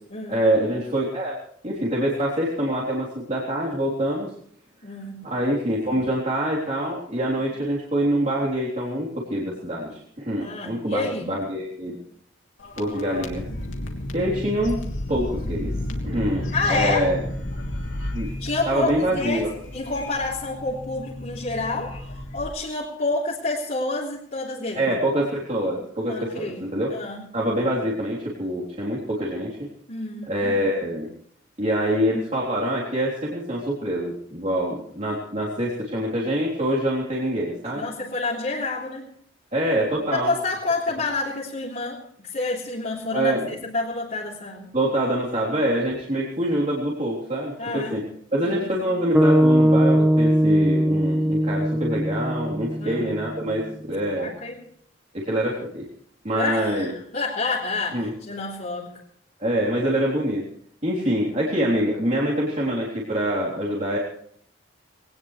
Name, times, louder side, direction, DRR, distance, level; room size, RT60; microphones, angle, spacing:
voice 1, 0.3-1.3 1.6-4.3 5.2-12.0 12.8-13.4 14.1-14.8 15.1-15.7 16.0-17.2 18.1-18.3 18.7-19.5 24.7-26.9 27.3-29.6 30.3-31.1 31.6-37.8 39.5-40.3 43.1-43.5 44.7-48.0 48.3-54.3 55.1-55.8 56.2-56.9 57.9-58.1 59.4-60.4 60.8-64.0, right 1 dB, 35° right, -6 dB, 3.6 m, -25 dB
voice 2, 4.8-5.3 10.4-11.3 16.5-17.1 18.4-21.9 22.3-24.9 26.1-26.6 26.9-27.3 29.9-30.4 37.7-39.1 40.1-44.7 47.6-48.0 48.4-48.7 52.8-53.1 54.2-54.6 56.3-59.0, left 3 dB, 45° left, -7 dB, 3.5 m, -28 dB
sound 1, 12.6-22.5, left 1 dB, 75° left, 3.1 m, -32 dB
sound 2, 49.1-53.4, equal, 10° right, 1.1 m, -20 dB
21.0 x 19.0 x 3.3 m, 0.64 s
head